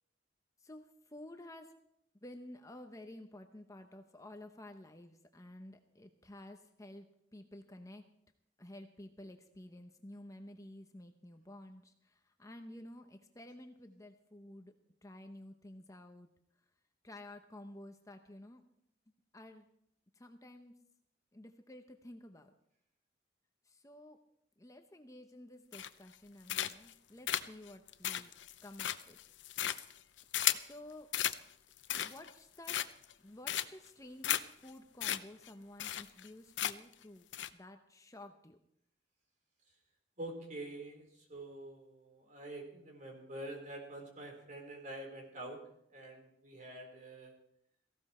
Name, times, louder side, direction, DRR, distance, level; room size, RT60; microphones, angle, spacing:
voice 1, 0.6-1.7 2.2-7.1 7.3-8.0 8.6-14.7 15.0-16.3 17.0-18.6 19.3-19.7 20.2-20.7 21.3-22.5 23.7-24.2 24.6-28.3 28.6-29.2 30.5-31.1 32.0-32.8 33.2-37.3 37.5-38.6, left 1 dB, 20° left, 6 dB, 0.8 m, -52 dB
sound 1, 25.7-26.1 26.5-26.9 27.3-30.7 31.1-31.4 31.8-32.3 32.7-33.1 33.5-33.9 34.2-34.4 34.7-34.8 35.0-35.2 35.5-35.6 35.8-36.3 36.6-36.9 37.3-37.5, left 11 dB, 85° left, 0.7 m, -34 dB
voice 2, 40.2-45.6 45.9-47.3, right 1 dB, 45° right, 2 dB, 4.0 m, -46 dB
17.5 x 15.5 x 4.3 m, 0.74 s
head